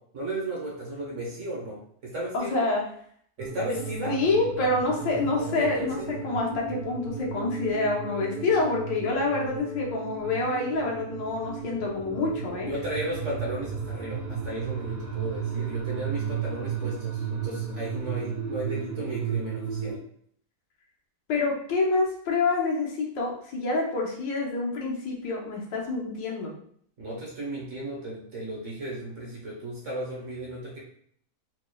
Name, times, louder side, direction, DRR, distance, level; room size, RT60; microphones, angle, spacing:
voice 1, 0.1-2.6 3.4-4.2 5.0-6.1 12.7-20.0 27.0-30.8, right 1 dB, 50° right, -3 dB, 1.1 m, -35 dB
voice 2, 2.3-2.8 4.1-6.0 6.2-12.7 21.3-26.5, left 3 dB, 80° left, -1 dB, 1.5 m, -27 dB
sound 1, 3.4-19.9, right 6 dB, 85° right, 1.7 m, -34 dB
4.5 x 3.1 x 2.2 m, 0.63 s
omnidirectional pair, 1.9 m